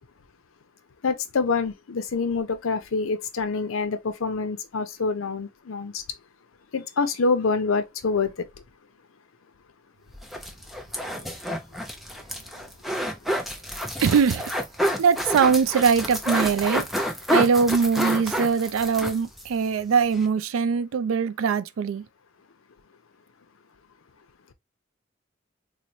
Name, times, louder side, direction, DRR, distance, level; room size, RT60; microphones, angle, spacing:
voice 1, 1.0-6.0 6.7-8.3, left 4 dB, 85° left, 0.6 m, -26 dB
sound 1, 10.1-19.5 19.8-19.9 20.1-20.3, equal, ahead, 0.3 m, -29 dB
voice 2, 14.0-14.5 15.0-16.8 17.3-22.0, right 6 dB, 80° right, 0.4 m, -22 dB
3.9 x 2.1 x 2.9 m
head